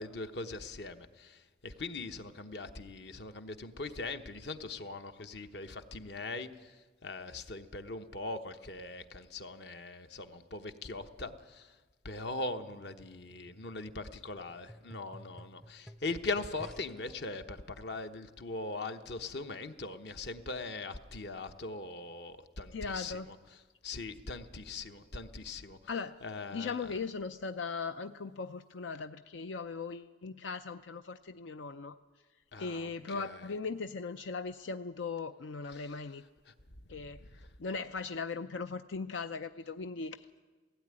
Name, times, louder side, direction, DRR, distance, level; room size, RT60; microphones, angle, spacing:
voice 1, 0.0-11.8 12.0-25.8 26.2-26.9 32.5-33.5 35.7-35.9 36.5-36.6 36.9-37.6, left 3 dB, 65° left, 8 dB, 1.0 m, -41 dB
sound 1, 12.7-17.1 17.9-18.0, equal, ahead, 0.5 m, -54 dB
voice 2, 22.7-23.3 25.9-26.2 26.5-32.0 32.6-36.2 36.9-37.2 37.6-40.4, left 4 dB, 90° left, 10 dB, 0.5 m, -39 dB
17.0 x 16.0 x 9.8 m, 1.3 s
head